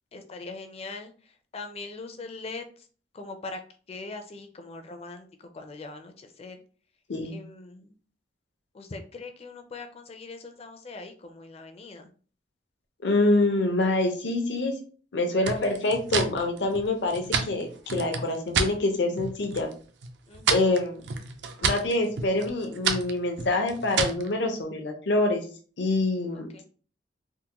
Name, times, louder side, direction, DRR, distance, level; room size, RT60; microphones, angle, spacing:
voice 1, 0.1-1.1 1.5-2.6 3.1-3.6 3.9-6.6 7.3-7.9 8.7-12.1 20.3-20.7 26.5-26.6, left 3 dB, 35° left, 6 dB, 0.4 m, -41 dB
voice 2, 13.0-14.7 15.1-19.7 20.5-21.0 21.6-25.4 25.8-26.6, left 2 dB, 75° left, 3 dB, 0.7 m, -26 dB
sound 1, 15.4-18.8 19.1-19.7 20.0-24.3, right 5 dB, 70° right, 0.5 m, -30 dB
3.6 x 2.1 x 2.9 m, 0.41 s
head